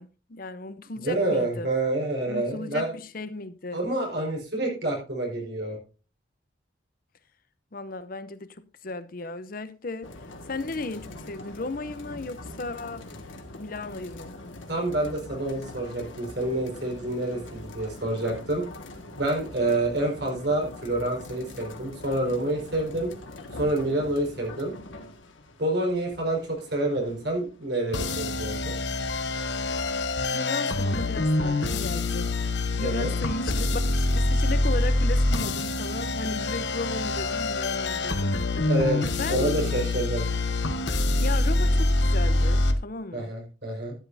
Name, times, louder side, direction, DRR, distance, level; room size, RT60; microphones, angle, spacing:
voice 1, 0.0-1.7 2.3-3.8 7.7-10.1 10.5-13.1 13.5-14.3 30.3-32.3 32.7-38.4 39.2-39.6 41.2-43.3, left 2 dB, 45° left, 0.7 m, -35 dB
voice 2, 1.0-2.9 3.7-5.8 14.7-18.6 19.2-23.1 23.5-24.7 25.6-28.7 32.8-33.1 38.7-39.0 39.3-40.3 43.1-43.9, right 1 dB, 60° right, 5.0 m, -28 dB
sound 1, 10.0-27.9, left 2 dB, 90° left, 1.9 m, -43 dB
sound 2, 27.9-42.7, left 2 dB, 65° left, 1.2 m, -25 dB
12.0 x 12.0 x 2.7 m
head